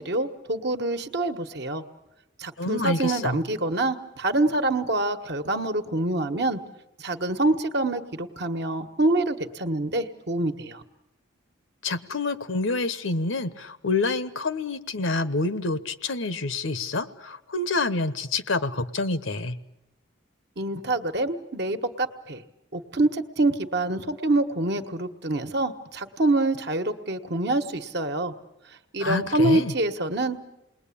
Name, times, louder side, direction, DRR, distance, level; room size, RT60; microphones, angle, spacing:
voice 1, 0.0-1.8 2.4-6.6 7.0-10.8 20.6-22.4 22.7-28.3 28.9-30.5, right 2 dB, 55° right, 7 dB, 1.3 m, -26 dB
voice 2, 2.6-3.4 11.8-19.6 29.0-29.7, left 3 dB, 75° left, 13 dB, 1.1 m, -27 dB
29.0 x 20.5 x 8.6 m, 0.92 s
head